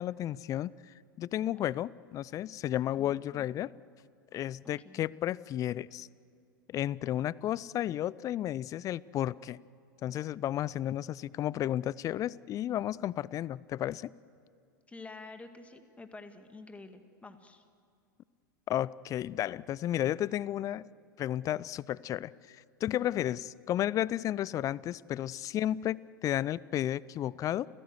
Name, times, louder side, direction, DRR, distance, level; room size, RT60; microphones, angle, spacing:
voice 1, 0.0-3.7 4.3-6.1 6.7-9.6 10.0-14.1 18.7-20.9 21.2-27.7, left 12 dB, 30° left, 22 dB, 0.5 m, -33 dB
voice 2, 14.9-17.6 23.0-23.2, left 3 dB, 10° left, 7 dB, 2.0 m, -49 dB
29.5 x 16.5 x 8.0 m, 2.4 s
figure-of-eight pair, 90°, 11 cm